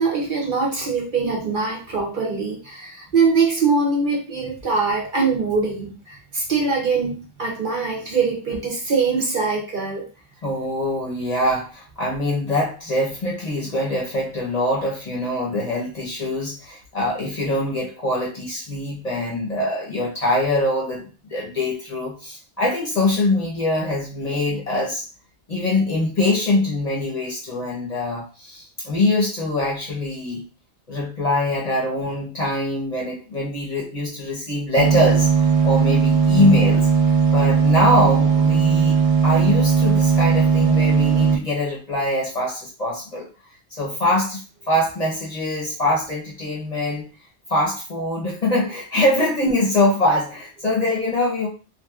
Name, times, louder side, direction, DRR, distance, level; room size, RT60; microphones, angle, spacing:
voice 1, 0.0-10.1 49.4-49.5, right 4 dB, 50° right, -2 dB, 0.8 m, -22 dB
voice 2, 10.4-25.1 25.5-30.4 30.9-36.9 37.3-43.3 43.7-47.1 47.5-51.5, left 1 dB, 40° left, -3 dB, 0.8 m, -23 dB
sound 1, 34.8-41.4, right 6 dB, 70° right, 0.3 m, -17 dB
3.1 x 2.5 x 2.3 m, 0.34 s
omnidirectional pair, 1.2 m